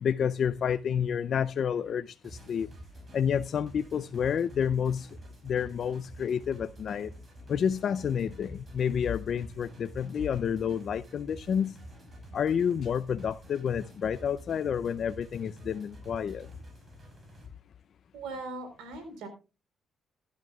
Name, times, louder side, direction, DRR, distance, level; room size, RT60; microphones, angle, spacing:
voice 1, 0.0-2.7 3.1-5.1 5.4-7.1 7.5-11.8 12.3-16.5, left 8 dB, 60° left, 0.5 m, -29 dB
sound 1, 2.2-17.5, equal, 40° right, 5.2 m, -48 dB
voice 2, 18.1-19.3, right 3 dB, 90° right, 3.9 m, -39 dB
15.5 x 11.5 x 2.3 m
cardioid pair, 90°, 0 cm